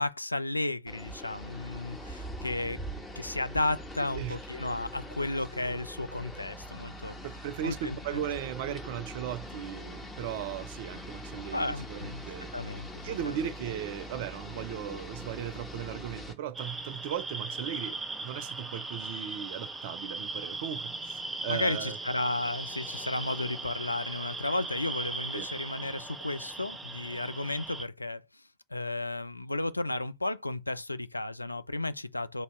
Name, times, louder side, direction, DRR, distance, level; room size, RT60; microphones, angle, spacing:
voice 1, 0.0-2.8 3.2-7.2 7.6-8.2 11.5-12.3 12.5-13.4 21.5-32.4, left 2 dB, 85° left, 0.3 m, -33 dB
sound 1, 0.9-16.3, equal, 10° left, 1.5 m, -43 dB
voice 2, 7.1-12.5 13.0-22.0 25.3-25.5, right 10 dB, 50° right, 0.5 m, -37 dB
sound 2, 16.5-27.8, right 3 dB, 10° right, 0.8 m, -38 dB
2.9 x 2.8 x 4.3 m
figure-of-eight pair, 90°, 0 cm